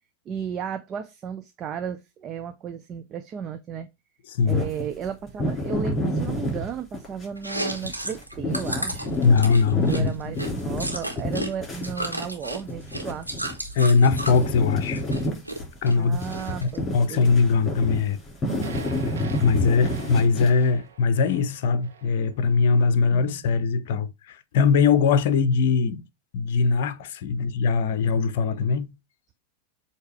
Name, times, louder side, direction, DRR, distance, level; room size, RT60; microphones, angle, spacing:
voice 1, 0.3-3.9 4.5-9.1 9.7-13.3 15.9-17.3 23.1-23.7, right 8 dB, 30° right, 0.6 m, -34 dB
voice 2, 4.3-4.6 9.2-10.3 13.7-15.0 15.8-16.2 16.6-18.2 19.4-26.0 26.3-28.9, left 5 dB, 50° left, 0.7 m, -21 dB
sound 1, 4.5-7.3 7.7-13.8 14.1-20.7, left 1 dB, 20° left, 3.8 m, -29 dB
Chewing mastication, 7.4-11.5 11.8-14.4 14.8-15.6 15.9-16.8, right 1 dB, 90° right, 1.6 m, -32 dB
sound 2, 18.5-22.8, right 8 dB, 65° right, 1.0 m, -42 dB
8.0 x 2.9 x 4.7 m
figure-of-eight pair, 90°, 0 cm